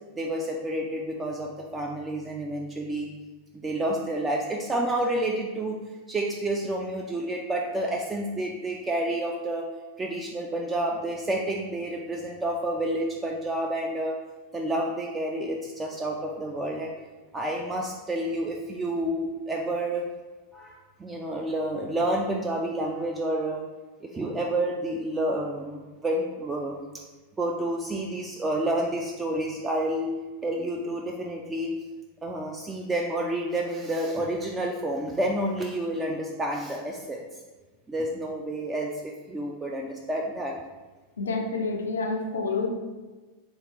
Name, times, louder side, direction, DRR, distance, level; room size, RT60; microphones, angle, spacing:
voice 1, 0.1-3.1 3.5-5.8 6.1-9.7 10.0-14.2 14.5-16.9 17.3-20.1 20.5-23.6 24.0-26.8 27.4-30.1 30.4-31.7 32.2-37.2 37.9-40.6, right 1 dB, 15° right, -1 dB, 0.3 m, -29 dB
voice 2, 41.2-42.7, left 3 dB, 70° left, 4 dB, 0.4 m, -28 dB
3.4 x 2.8 x 3.0 m, 1.3 s
figure-of-eight pair, 90°, 0 cm